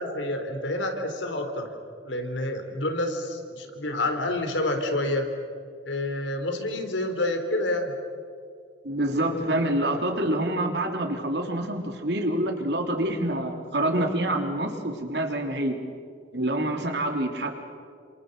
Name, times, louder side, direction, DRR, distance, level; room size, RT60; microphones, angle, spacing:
voice 1, 0.0-1.7 2.0-5.3 5.9-7.9, left 1 dB, 85° left, 5 dB, 3.7 m, -28 dB
voice 2, 8.8-15.8 16.3-17.5, right 1 dB, 65° right, 3 dB, 3.4 m, -26 dB
28.5 x 27.0 x 6.7 m, 2.2 s
head